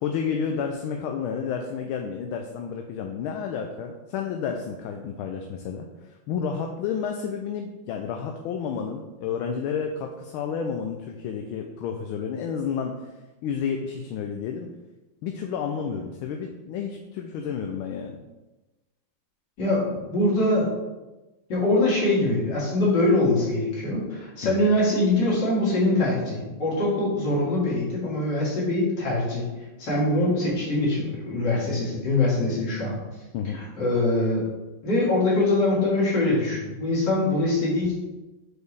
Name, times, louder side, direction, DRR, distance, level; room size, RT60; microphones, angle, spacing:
voice 1, 0.0-5.9 6.3-12.9 13.4-14.7 15.2-18.2 24.4-24.6 33.3-33.6, left 6 dB, 80° left, 3 dB, 1.4 m, -30 dB
voice 2, 19.6-20.7 21.5-29.4 29.8-33.0 33.5-34.4 34.8-37.9, left 2 dB, 55° left, -7 dB, 2.7 m, -23 dB
6.9 x 4.4 x 3.3 m, 1.1 s
omnidirectional pair, 2.3 m